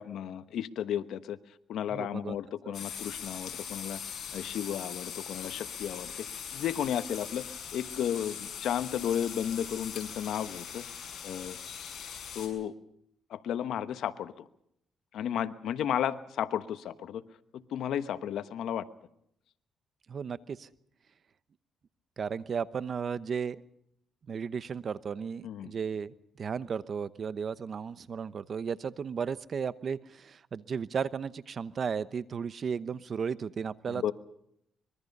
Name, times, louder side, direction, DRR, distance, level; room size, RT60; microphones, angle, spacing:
voice 1, 0.0-1.4 1.7-4.0 4.3-6.2 6.5-7.4 7.7-10.8 11.2-11.6 12.3-12.7 13.3-14.3 15.1-17.2 17.5-18.8 25.4-25.7 33.9-34.1, left 10 dB, 75° left, 12 dB, 1.1 m, -33 dB
voice 2, 1.9-2.4 2.6-2.7 20.1-20.7 22.2-23.6 24.3-34.1, right 6 dB, 50° right, 15 dB, 0.9 m, -34 dB
sound 1, 2.7-12.5, left 7 dB, 55° left, 6.6 m, -41 dB
25.0 x 22.5 x 5.4 m, 0.75 s
cardioid pair, 90°, 0 cm